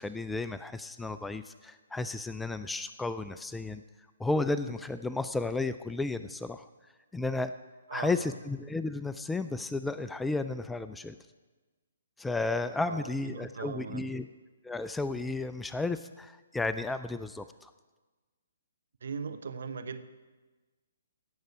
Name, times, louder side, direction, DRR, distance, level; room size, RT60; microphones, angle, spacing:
voice 1, 0.0-3.8 4.2-6.7 7.1-7.5 7.9-11.2 12.2-14.3 14.6-17.7, left 3 dB, 5° left, 12 dB, 0.3 m, -33 dB
voice 2, 7.9-8.3 12.8-14.1 19.0-20.0, right 5 dB, 60° right, 10 dB, 0.8 m, -39 dB
16.5 x 6.6 x 4.8 m, 1.3 s
figure-of-eight pair, 130°, 0 cm